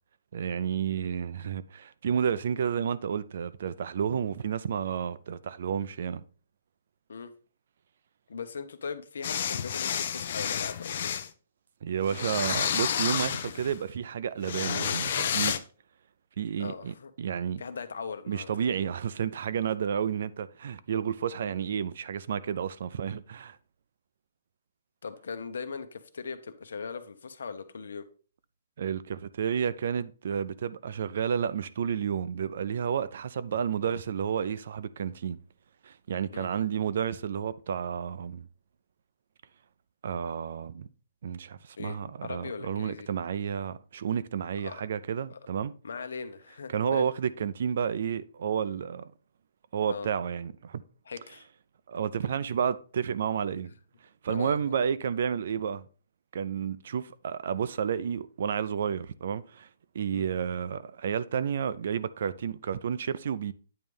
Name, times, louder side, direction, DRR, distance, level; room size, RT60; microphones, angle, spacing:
voice 1, 0.3-6.2 11.8-15.6 16.4-17.6 18.3-23.6 28.8-35.4 35.8-38.5 40.0-40.9 41.2-45.7 46.7-49.1 49.7-50.8 51.9-53.7 54.2-55.9 56.3-59.7 59.9-63.5, right 7 dB, 50° right, 0.4 m, -31 dB
voice 2, 8.3-11.2 16.6-17.1 17.6-18.5 25.0-28.1 36.3-36.5 41.8-42.0 42.2-43.1 44.6-44.8 45.3-45.4 45.8-47.1 49.9-50.1 51.0-51.5 54.3-54.7 60.1-60.3, left 5 dB, 80° left, 1.0 m, -39 dB
sound 1, 9.2-11.3 12.1-13.8 14.4-15.6, left 9 dB, 45° left, 0.5 m, -30 dB
sound 2, 12.1-13.0 14.6-15.6, right 5 dB, 30° right, 1.0 m, -47 dB
8.9 x 3.2 x 5.3 m
hypercardioid pair, 175°, 0 cm